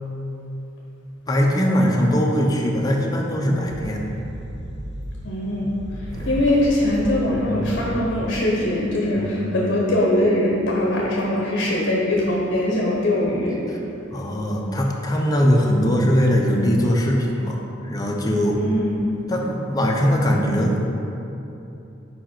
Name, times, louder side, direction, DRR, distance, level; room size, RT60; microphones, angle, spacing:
voice 1, 1.3-4.1 6.1-6.4 7.4-7.7 9.2-9.4 13.7-13.8 14.1-18.6 19.3-20.8, equal, 20° left, -1 dB, 0.7 m, -21 dB
sound 1, 3.6-8.6, right 1 dB, 65° right, 0.5 m, -34 dB
voice 2, 5.2-5.7 6.3-13.5 18.5-19.0, left 1 dB, 60° left, -4 dB, 0.8 m, -21 dB
5.0 x 5.0 x 4.4 m, 3.0 s
head